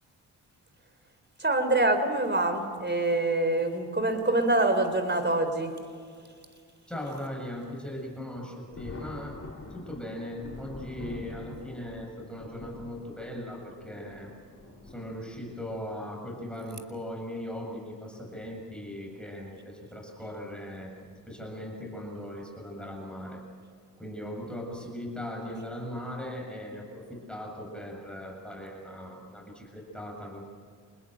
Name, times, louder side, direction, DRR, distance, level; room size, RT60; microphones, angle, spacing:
voice 1, 1.4-5.7, right 2 dB, 25° right, 8 dB, 4.3 m, -25 dB
voice 2, 6.9-9.5 9.7-14.3 14.8-21.0 21.3-23.5 24.0-30.4, left 1 dB, ahead, 0 dB, 7.4 m, -39 dB
Thunder, 8.7-15.8 16.8-16.9 18.3-18.6 19.0-19.1 21.0-21.2 21.9-22.3, left 2 dB, 35° left, 5.6 m, -45 dB
26.5 x 20.0 x 8.0 m, 2.1 s
hypercardioid pair, 45°, 44 cm